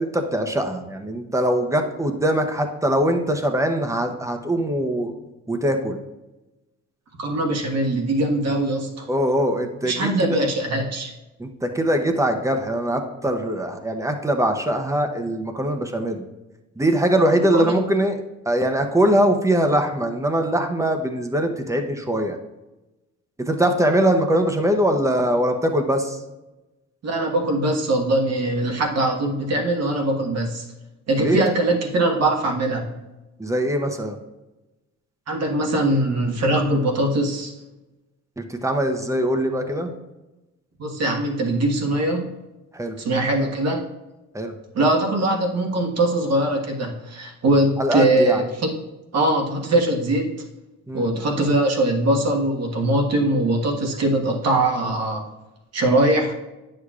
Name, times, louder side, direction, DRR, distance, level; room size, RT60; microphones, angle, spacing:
voice 1, 0.0-5.1 5.5-6.0 9.1-10.4 11.4-16.2 16.8-18.2 18.5-22.4 23.4-26.2 31.2-31.4 33.4-34.2 38.4-39.9 42.7-42.9 44.3-44.5 47.8-48.4 50.9-51.1, right 1 dB, 10° right, 5 dB, 0.8 m, -22 dB
voice 2, 7.2-9.1 9.8-11.1 17.3-17.7 27.0-30.6 31.1-32.9 35.3-37.5 40.8-42.3 43.0-43.8 44.7-48.7 49.1-50.3 50.9-55.3 55.7-56.3, right 1 dB, 60° right, 0 dB, 1.4 m, -21 dB
9.8 x 6.6 x 2.4 m, 1.1 s
cardioid pair, 90°, 30 cm